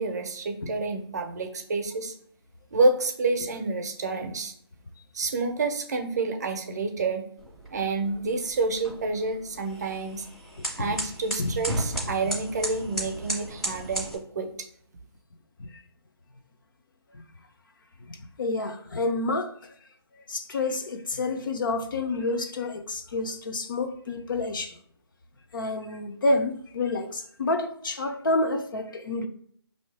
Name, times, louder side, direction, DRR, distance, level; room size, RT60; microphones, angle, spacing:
voice 1, 0.0-2.1 2.7-4.5 5.1-7.3 7.7-10.2 10.8-14.5, right 3 dB, 40° right, 0.6 m, -28 dB
sound 1, 7.4-14.1, right 1 dB, ahead, 0.6 m, -35 dB
voice 2, 10.6-11.0 11.4-11.6 15.6-15.7 17.1-17.2 18.1-19.7 20.3-24.8 25.5-29.3, left 2 dB, 50° left, 0.6 m, -29 dB
5.2 x 2.7 x 3.3 m
hypercardioid pair, 165°, 14 cm